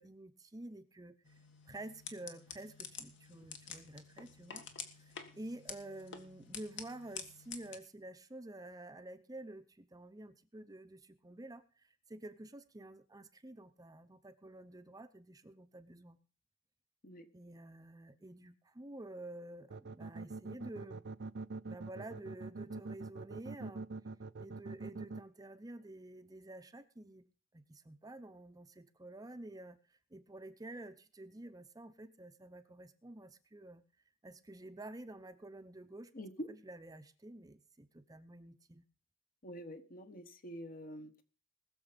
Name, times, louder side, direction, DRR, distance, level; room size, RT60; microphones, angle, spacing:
voice 1, 0.0-1.4 1.7-4.6 5.0-16.2 17.3-21.0 21.7-23.9 24.4-27.3 27.5-33.8 34.2-36.1 36.5-38.8, right 1 dB, 20° right, 10 dB, 0.7 m, -50 dB
sound 1, 1.2-7.8, left 6 dB, 65° left, 1.7 m, -49 dB
sound 2, 19.7-25.2, right 3 dB, 60° right, 0.5 m, -43 dB
voice 2, 36.1-36.5 39.4-41.2, equal, 45° left, 8 dB, 1.3 m, -46 dB
20.5 x 7.0 x 5.1 m, 0.37 s
head